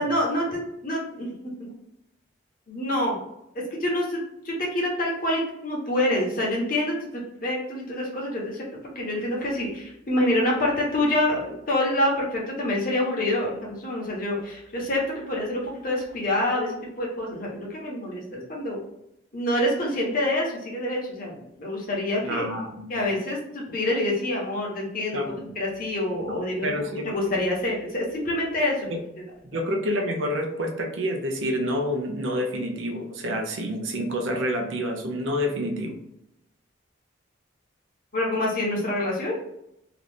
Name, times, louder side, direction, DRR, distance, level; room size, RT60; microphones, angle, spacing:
voice 1, 0.0-1.7 2.7-3.2 3.7-16.7 17.0-18.8 19.3-22.4 22.9-26.7 27.1-28.9 29.5-29.6 38.1-39.4, left 1 dB, 45° left, -3 dB, 1.0 m, -27 dB
voice 2, 22.2-23.1 25.1-25.3 26.3-27.3 28.9-29.0 29.4-36.0, equal, 80° right, 3 dB, 0.7 m, -28 dB
2.9 x 2.5 x 3.4 m, 0.83 s
head